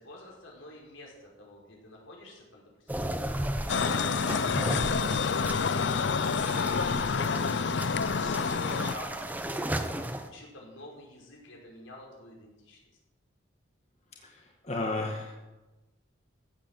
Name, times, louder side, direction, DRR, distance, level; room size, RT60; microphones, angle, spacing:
voice 1, 0.0-12.8, left 1 dB, 85° left, -2 dB, 5.4 m, -49 dB
sound 1, 2.9-10.3, right 1 dB, 10° right, 0.8 m, -35 dB
sound 2, 3.7-8.9, left 5 dB, 65° left, 0.5 m, -28 dB
voice 2, 14.2-15.3, left 2 dB, 35° left, 0 dB, 1.7 m, -33 dB
15.5 x 8.8 x 7.6 m, 1.1 s
head